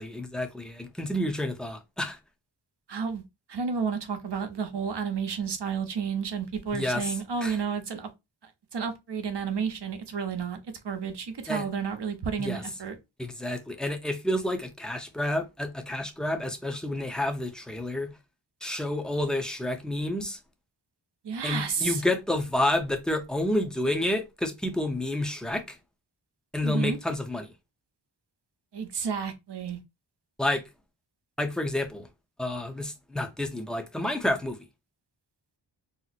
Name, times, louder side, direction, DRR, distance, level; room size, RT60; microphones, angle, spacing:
voice 1, 0.0-2.2 6.7-7.1 7.4-7.6 11.5-11.6 12.4-12.6 13.2-18.1 18.6-20.4 21.4-25.8 26.5-27.5 30.4-30.6 31.4-32.1 32.4-34.6, left 1 dB, ahead, 0.6 m, -29 dB
voice 2, 2.9-3.2 3.5-8.1 8.4-13.0 21.2-22.0 26.6-27.0 28.7-29.8, right 6 dB, 65° right, 0.8 m, -31 dB
2.9 x 2.0 x 4.0 m
wide cardioid pair, 75°, 45 cm